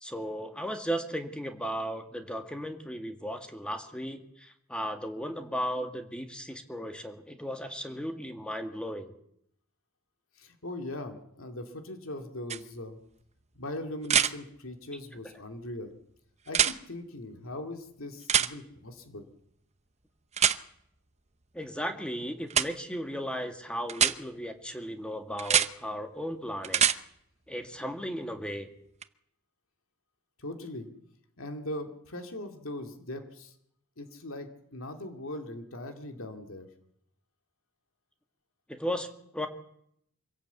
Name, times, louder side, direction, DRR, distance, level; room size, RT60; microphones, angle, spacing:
voice 1, 0.0-9.1 21.5-26.9 27.5-28.7 38.7-39.5, equal, 5° left, 6 dB, 1.9 m, -36 dB
voice 2, 10.4-13.0 13.6-16.0 16.5-19.2 30.4-30.9 31.4-33.5 34.0-36.7, left 1 dB, 75° left, 5 dB, 2.4 m, -40 dB
sound 1, 12.5-12.6 14.0-14.3 16.5-16.7 18.3-18.5 20.4-20.6 22.5-22.7 23.9-24.1 25.4-25.7 26.6-27.0 29.0-29.1, right 8 dB, 30° right, 0.8 m, -24 dB
25.0 x 17.0 x 8.2 m, 0.74 s
head